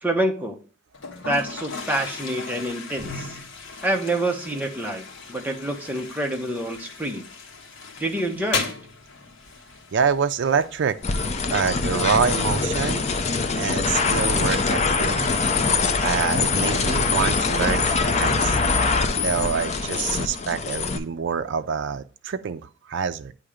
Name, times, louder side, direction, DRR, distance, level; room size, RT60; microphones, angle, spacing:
voice 1, 0.0-0.6 1.2-3.4 3.8-7.3 8.0-8.7, right 1 dB, 10° right, 0.7 m, -27 dB
Toilet flush, 0.9-18.0, left 4 dB, 65° left, 1.0 m, -38 dB
voice 2, 9.9-11.0 11.5-13.0 13.6-15.4 16.0-18.6 19.2-23.3, right 6 dB, 60° right, 0.4 m, -26 dB
sound 1, 11.0-21.0, left 4 dB, 35° left, 0.5 m, -23 dB
8.4 x 2.8 x 4.9 m
head